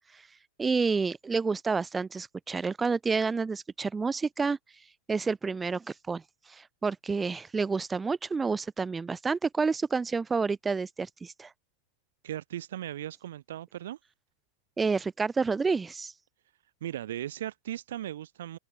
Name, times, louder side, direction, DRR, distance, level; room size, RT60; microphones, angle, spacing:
voice 1, 0.6-4.6 5.1-6.2 6.5-11.5 14.8-16.1, right 4 dB, 15° right, 0.4 m, -29 dB
voice 2, 12.2-14.0 16.8-18.6, right 12 dB, 60° right, 1.1 m, -37 dB
open air
figure-of-eight pair, 90°, 0 cm